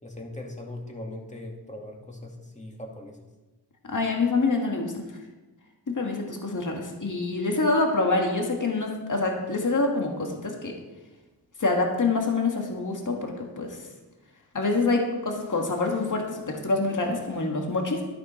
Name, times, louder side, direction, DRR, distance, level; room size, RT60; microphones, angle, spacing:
voice 1, 0.0-3.2, left 1 dB, 15° left, 0 dB, 2.3 m, -40 dB
voice 2, 3.9-4.9 5.9-10.7 11.6-13.8 14.5-18.0, left 3 dB, 45° left, 1 dB, 2.1 m, -26 dB
13.0 x 11.0 x 4.5 m, 1.1 s
wide cardioid pair, 100°, 41 cm